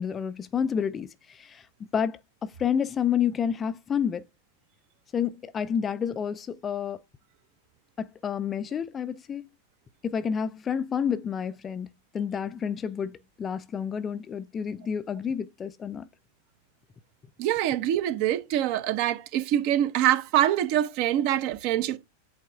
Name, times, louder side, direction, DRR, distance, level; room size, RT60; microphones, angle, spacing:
voice 1, 0.0-1.6 1.9-4.2 5.1-7.0 8.0-9.5 10.0-11.9 12.1-16.1, left 7 dB, 20° left, 0.4 m, -29 dB
voice 2, 17.4-22.0, right 12 dB, 45° right, 0.9 m, -25 dB
8.4 x 3.5 x 3.4 m
figure-of-eight pair, 90°, 0 cm